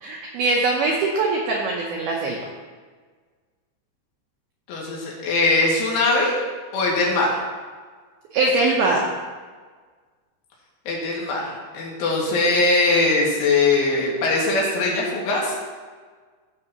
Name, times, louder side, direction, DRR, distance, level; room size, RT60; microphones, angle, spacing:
voice 1, 0.0-2.4 8.3-9.1, right 3 dB, 85° right, -1 dB, 2.1 m, -22 dB
voice 2, 4.7-6.4 6.7-7.4 10.9-15.6, left 3 dB, 80° left, -4 dB, 4.4 m, -21 dB
16.0 x 6.3 x 2.9 m, 1.5 s
omnidirectional pair, 5.5 m